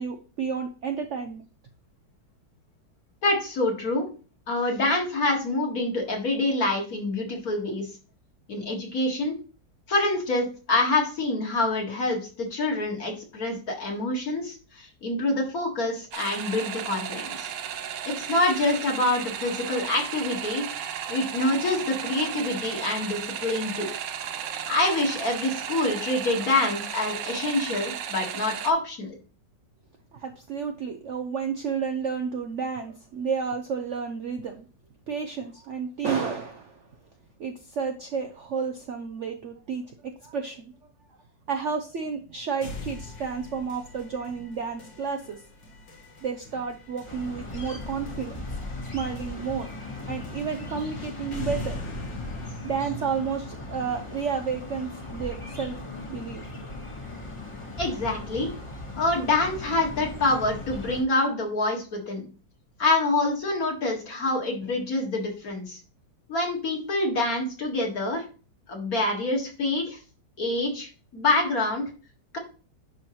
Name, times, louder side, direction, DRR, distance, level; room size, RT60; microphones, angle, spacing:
voice 1, 0.0-1.4 30.1-34.7 35.1-36.9 37.4-40.7 41.5-45.4 46.2-48.4 48.9-49.7 50.1-51.8 52.6-55.7 56.1-56.4, right 6 dB, 60° right, 4 dB, 0.8 m, -31 dB
voice 2, 3.2-4.1 4.5-7.9 8.5-9.4 9.9-17.5 18.0-20.7 21.1-23.9 24.7-29.1 57.8-58.5 59.0-62.3 62.8-65.8 66.3-68.3 68.7-70.0 70.4-71.8, left 2 dB, 55° left, 0 dB, 2.2 m, -26 dB
sound 1, 16.1-28.7, right 9 dB, 85° right, 1.4 m, -34 dB
sound 2, 42.6-54.6, left 2 dB, 80° left, 2.4 m, -42 dB
sound 3, 47.1-61.0, left 2 dB, 20° left, 1.3 m, -38 dB
11.0 x 4.5 x 3.1 m, 0.37 s
omnidirectional pair, 1.9 m